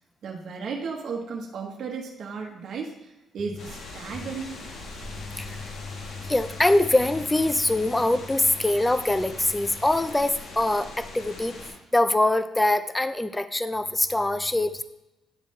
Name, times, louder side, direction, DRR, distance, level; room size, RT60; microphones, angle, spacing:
voice 1, 0.2-4.6, right 5 dB, 60° right, 0 dB, 1.0 m, -34 dB
sound 1, 3.6-11.7, left 2 dB, 70° left, 1.3 m, -41 dB
voice 2, 5.1-11.6 11.9-14.8, left 1 dB, 10° left, 12 dB, 0.3 m, -24 dB
9.8 x 3.7 x 3.2 m, 1.0 s
cardioid pair, 90°, 0 cm